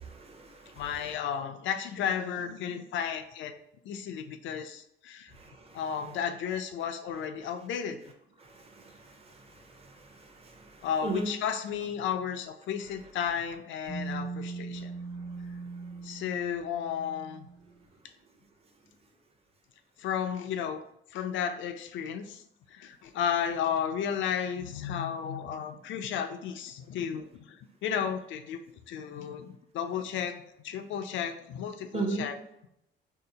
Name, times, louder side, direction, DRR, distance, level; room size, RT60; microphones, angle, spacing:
voice 1, 0.0-1.2 5.3-6.2 7.1-7.2 8.4-11.3 12.8-13.0 13.4-13.5 31.9-32.3, right 3 dB, 30° right, 2 dB, 0.7 m, -39 dB
voice 2, 0.8-3.5 3.8-5.3 5.7-8.0 10.8-14.9 16.0-17.5 20.0-20.8 21.1-22.4 22.7-28.6 28.9-30.4 30.6-32.4, left 8 dB, 70° left, 8 dB, 0.4 m, -33 dB
sound 1, 13.8-17.7, right 4 dB, 55° right, 1.1 m, -40 dB
2.7 x 2.0 x 3.8 m, 0.77 s
cardioid pair, 90°, 20 cm